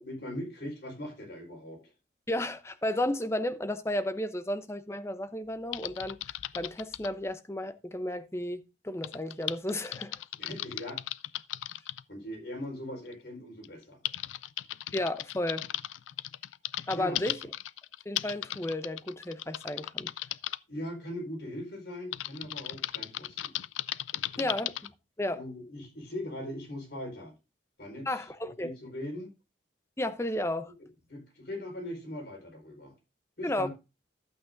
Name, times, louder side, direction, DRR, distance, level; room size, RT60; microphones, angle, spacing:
voice 1, 0.0-1.8 10.4-11.0 12.1-14.0 16.9-17.2 20.7-23.5 24.1-24.5 25.3-27.3 27.8-29.3 31.1-32.9 33.4-33.7, left 1 dB, 55° left, 4.7 m, -40 dB
voice 2, 2.3-6.2 6.5-10.2 14.9-15.7 16.9-17.4 18.1-20.1 24.4-24.9 25.2-25.4 28.1-28.7 30.0-30.7 33.4-33.7, left 1 dB, 15° left, 0.7 m, -33 dB
Typing, 5.7-7.1 9.0-12.0 13.1-13.2 13.6-20.6 22.1-24.9, left 14 dB, 85° left, 0.4 m, -36 dB
12.0 x 8.5 x 2.6 m
head